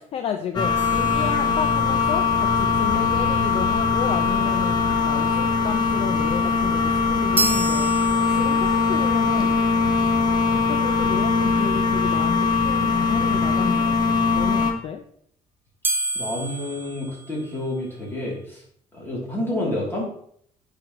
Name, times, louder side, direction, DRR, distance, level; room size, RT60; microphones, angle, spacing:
voice 1, 0.1-4.8 5.0-9.6 10.0-10.1 10.5-15.0, left 8 dB, 50° left, 6 dB, 0.5 m, -32 dB
sound 1, 0.5-14.7, left 4 dB, 30° left, 1.3 m, -21 dB
sound 2, 0.8-2.1 7.4-8.8 15.8-18.0, right 2 dB, 15° right, 0.5 m, -30 dB
voice 2, 16.1-18.6 18.9-20.0, left 1 dB, 15° left, -3 dB, 2.8 m, -29 dB
9.9 x 5.0 x 3.0 m, 0.65 s
cardioid pair, 145°, 13 cm